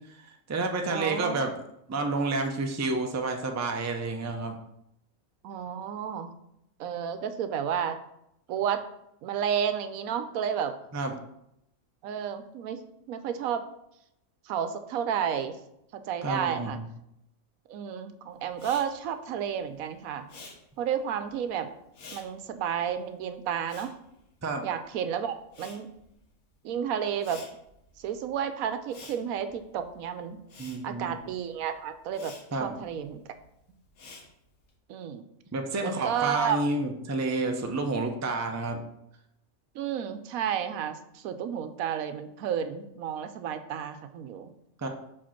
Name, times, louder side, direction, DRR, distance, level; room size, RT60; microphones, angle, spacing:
voice 1, 0.2-1.5 1.9-4.5 10.9-11.2 16.2-16.8 24.4-24.7 30.6-31.1 32.5-32.8 35.5-38.8 44.8-44.9, right 2 dB, 25° right, 4 dB, 0.4 m, -30 dB
voice 2, 0.8-1.5 5.4-6.3 6.8-8.0 8.5-8.8 9.2-10.8 12.0-13.7 14.5-15.6 15.9-16.8 17.7-20.3 20.8-21.7 22.1-23.9 24.6-25.9 26.6-27.4 28.0-30.4 30.8-32.3 32.6-33.2 34.9-35.2 35.8-36.6 39.7-44.5, right 8 dB, 80° right, 9 dB, 1.1 m, -31 dB
Respiratory sounds, 18.5-25.0 25.2-34.7, left 3 dB, 80° left, 1.6 m, -51 dB
5.1 x 4.4 x 5.8 m, 0.79 s
omnidirectional pair, 1.5 m